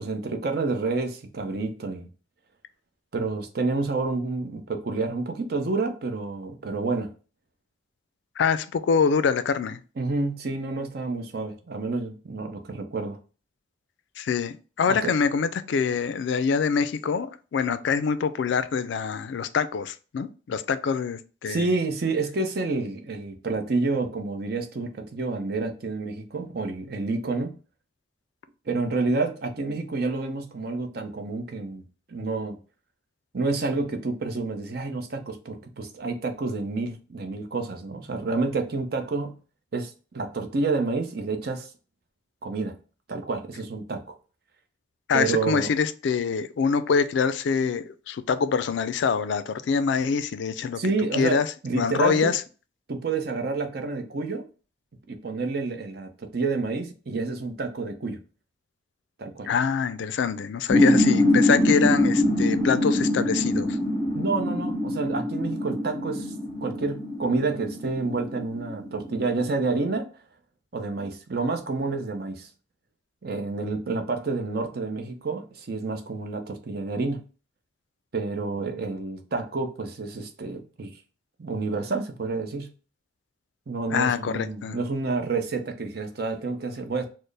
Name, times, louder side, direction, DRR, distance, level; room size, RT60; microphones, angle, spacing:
voice 1, 0.0-2.1 3.1-7.1 10.0-13.2 14.9-15.1 21.5-27.6 28.7-31.8 32.1-32.6 33.3-39.4 39.7-41.7 42.4-42.7 43.1-44.1 45.1-45.7 50.8-52.3 52.9-54.5 55.1-58.2 59.2-59.5 64.1-66.3 66.6-70.1 70.7-72.5 73.2-77.2 78.1-80.9 81.4-82.7 83.7-87.0, right 3 dB, 55° right, 0.6 m, -29 dB
voice 2, 8.4-9.8 14.2-21.7 45.1-50.8 51.1-52.4 59.5-63.8 83.9-84.8, left 6 dB, 70° left, 0.3 m, -25 dB
sound 1, 60.7-69.9, left 1 dB, 20° left, 0.6 m, -24 dB
4.3 x 2.0 x 3.2 m
head